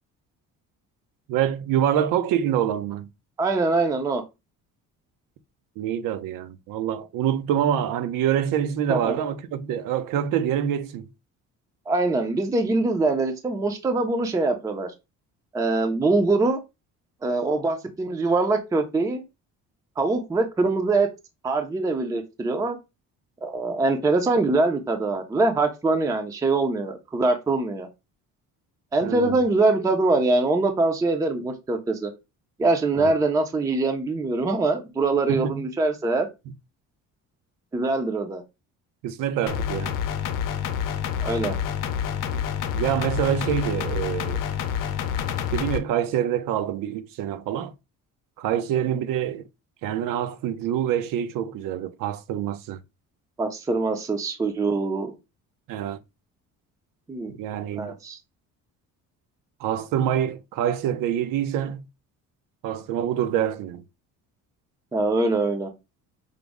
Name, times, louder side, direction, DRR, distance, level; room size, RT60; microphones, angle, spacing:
voice 1, 1.3-3.1 5.8-11.1 29.0-29.4 32.9-33.1 35.3-35.5 39.0-39.9 42.7-44.4 45.5-47.7 48.4-49.4 49.8-52.8 55.7-56.0 57.4-57.9 59.6-61.8 62.6-63.8, right 10 dB, 85° right, 0.6 m, -26 dB
voice 2, 3.4-4.2 8.9-9.1 11.9-14.9 15.5-16.6 17.2-19.2 20.0-21.1 21.4-22.8 23.4-27.9 28.9-32.1 32.6-36.3 37.7-38.4 41.2-41.6 53.4-55.1 57.1-57.3 57.8-58.2 64.9-65.7, right 3 dB, 10° right, 0.4 m, -23 dB
sound 1, 39.5-45.8, left 8 dB, 75° left, 0.7 m, -28 dB
5.0 x 2.0 x 3.5 m
cardioid pair, 150°, 32 cm